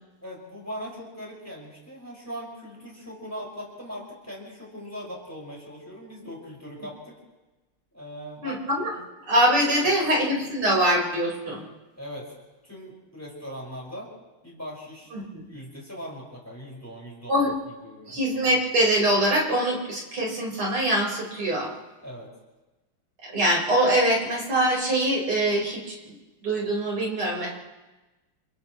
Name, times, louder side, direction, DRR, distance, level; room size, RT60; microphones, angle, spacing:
voice 1, 0.2-7.2 7.9-8.7 9.0-9.1 9.4-10.0 12.0-12.3 12.6-14.1 14.4-15.1 15.5-17.4 17.8-18.2 22.0-22.3, equal, 5° left, -3 dB, 5.8 m, -40 dB
voice 2, 8.4-8.9 9.3-11.6 15.1-15.4 17.3-17.5 18.1-21.7 23.3-26.2 26.4-27.5, right 1 dB, 80° right, -3 dB, 5.9 m, -23 dB
29.0 x 28.5 x 3.2 m, 1.1 s
omnidirectional pair, 2.4 m